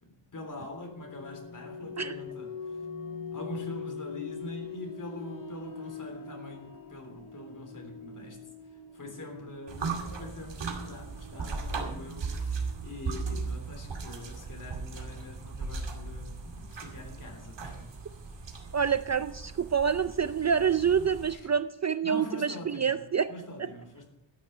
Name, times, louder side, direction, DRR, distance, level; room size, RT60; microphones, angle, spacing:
voice 1, 0.0-2.8 3.3-8.4 8.9-18.0 22.0-24.1, left 2 dB, 45° left, 3 dB, 3.5 m, -43 dB
sound 1, 0.6-13.1, left 5 dB, 70° left, 2.7 m, -43 dB
sound 2, 9.7-21.4, right 4 dB, 70° right, 2.5 m, -37 dB
voice 2, 18.7-23.3 23.6-23.7, right 7 dB, 40° right, 12 dB, 0.5 m, -27 dB
13.5 x 10.0 x 5.6 m, 0.89 s
wide cardioid pair, 165°, 44 cm